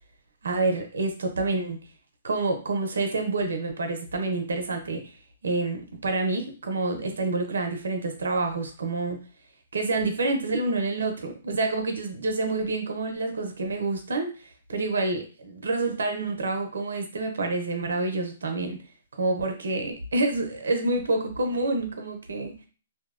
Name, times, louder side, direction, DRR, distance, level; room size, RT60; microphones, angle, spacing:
voice 1, 0.4-1.8 2.2-5.0 5.4-9.2 9.7-14.3 14.7-18.8 19.2-22.6, right 2 dB, 85° right, 5 dB, 0.5 m, -28 dB
2.6 x 2.1 x 2.4 m, 0.37 s
hypercardioid pair, 145°, 0 cm